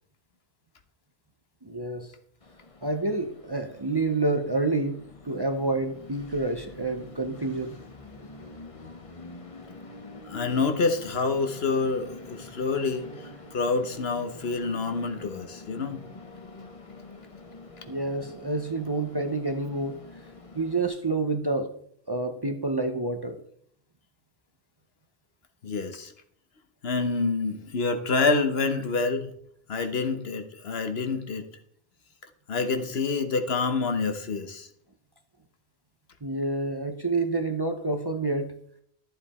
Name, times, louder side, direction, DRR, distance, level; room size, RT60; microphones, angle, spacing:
voice 1, 1.6-2.1 2.8-5.0 5.2-7.8 17.9-20.0 20.5-21.7 22.1-23.4 36.2-38.5, right 2 dB, 25° right, 0.7 m, -28 dB
Train, 2.4-20.9, left 3 dB, 35° left, 1.0 m, -46 dB
voice 2, 10.2-16.0 25.6-26.1 26.8-29.3 29.7-31.5 32.5-34.7, left 4 dB, 70° left, 1.3 m, -27 dB
12.0 x 7.8 x 4.3 m
omnidirectional pair, 1.1 m